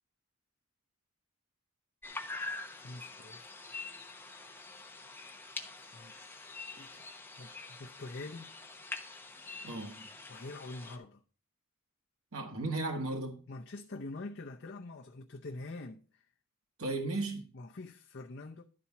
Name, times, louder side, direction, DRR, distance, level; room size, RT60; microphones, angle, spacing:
sound 1, 2.0-11.0, left 3 dB, 10° left, 1.0 m, -45 dB
voice 1, 2.7-3.4 5.7-8.5 10.3-11.2 13.5-16.2 17.5-18.6, left 2 dB, 55° left, 0.7 m, -46 dB
voice 2, 9.6-10.1 12.3-13.4 16.8-17.5, right 2 dB, 70° right, 1.6 m, -35 dB
11.5 x 4.2 x 5.8 m
head